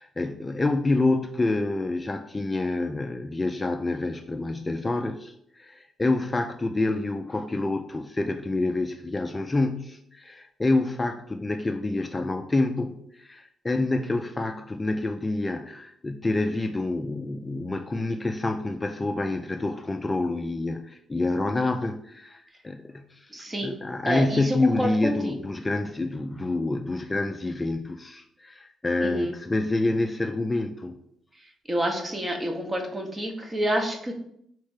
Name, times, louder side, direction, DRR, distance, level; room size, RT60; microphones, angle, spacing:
voice 1, 0.0-23.3 23.6-31.0, left 2 dB, 20° left, 6 dB, 0.3 m, -27 dB
voice 2, 23.3-23.7 24.0-25.4 29.0-29.3 31.7-34.1, right 1 dB, 20° right, 4 dB, 0.8 m, -28 dB
3.3 x 3.2 x 4.7 m, 0.73 s
cardioid pair, 90°, 0 cm